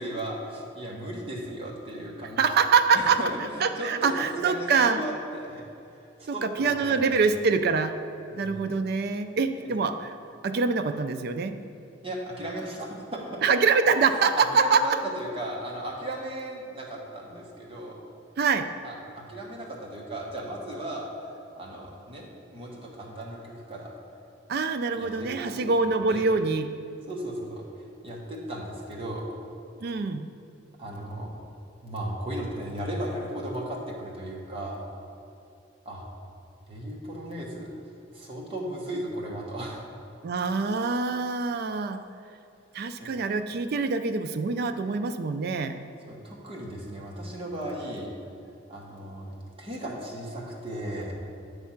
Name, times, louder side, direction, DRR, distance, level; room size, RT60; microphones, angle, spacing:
voice 1, 0.0-2.4 2.9-5.7 5.9-7.1 8.3-8.6 9.6-9.7 12.0-13.4 14.4-18.0 18.8-22.3 22.5-23.9 25.0-26.3 27.1-27.7 28.0-29.2 30.8-31.3 31.8-34.8 35.8-36.0 36.7-37.7 38.1-39.8 43.0-43.1 46.1-48.1 48.7-51.1, right 1 dB, 30° right, -3 dB, 1.1 m, -36 dB
voice 2, 2.4-3.2 3.6-5.0 6.3-7.9 8.3-10.2 10.4-11.6 13.4-14.9 18.4-18.7 24.5-26.7 29.8-30.3 40.2-42.0 42.7-45.8, right 4 dB, 50° right, 9 dB, 0.4 m, -25 dB
8.4 x 3.4 x 5.7 m, 2.6 s
head